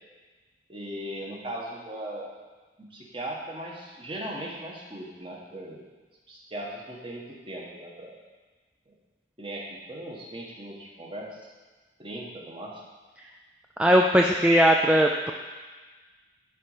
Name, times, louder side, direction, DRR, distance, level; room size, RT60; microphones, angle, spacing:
voice 1, 0.7-2.3 2.8-5.9 6.3-8.2 9.4-11.4 12.0-12.8 14.2-14.4, right 1 dB, 30° right, -2 dB, 1.3 m, -38 dB
voice 2, 13.8-15.3, equal, 5° right, 1 dB, 0.3 m, -19 dB
12.0 x 4.2 x 5.0 m, 1.3 s
head